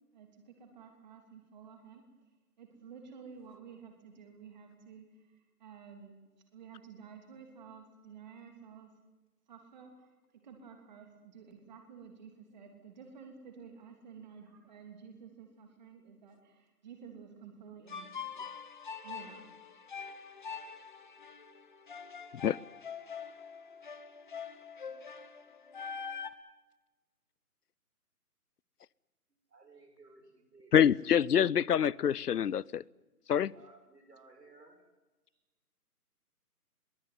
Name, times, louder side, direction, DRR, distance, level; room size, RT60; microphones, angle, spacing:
voice 1, 0.1-2.0 2.6-6.2 6.5-8.9 9.5-18.3 19.0-19.4, right 6 dB, 30° right, 4 dB, 3.2 m, -52 dB
voice 2, 14.2-14.8 19.0-19.1 29.5-30.7 33.5-34.8 35.3-35.4, right 3 dB, 90° right, 4 dB, 6.9 m, -59 dB
sound 1, 17.9-26.3, left 6 dB, 30° left, 1.0 m, -44 dB
voice 3, 30.7-32.8 33.3-33.5, left 9 dB, 75° left, 26 dB, 0.6 m, -26 dB
22.0 x 17.5 x 9.5 m, 1.2 s
hypercardioid pair, 165°, 47 cm